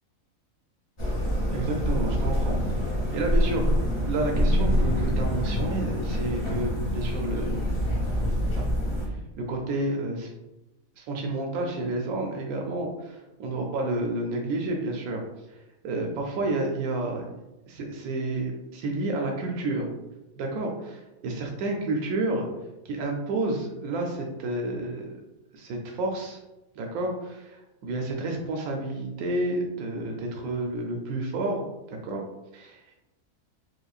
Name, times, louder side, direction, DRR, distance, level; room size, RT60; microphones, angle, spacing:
sound 1, 1.0-9.1, equal, 30° left, 0.6 m, -26 dB
voice 1, 1.5-3.8 4.1-7.7 9.0-10.3 11.0-15.2 15.5-17.2 17.7-19.9 20.4-22.5 22.8-25.2 25.5-26.4 26.8-32.2 32.5-33.0, right 2 dB, 85° right, 1 dB, 1.0 m, -30 dB
4.9 x 2.1 x 2.3 m, 0.99 s
omnidirectional pair, 1.5 m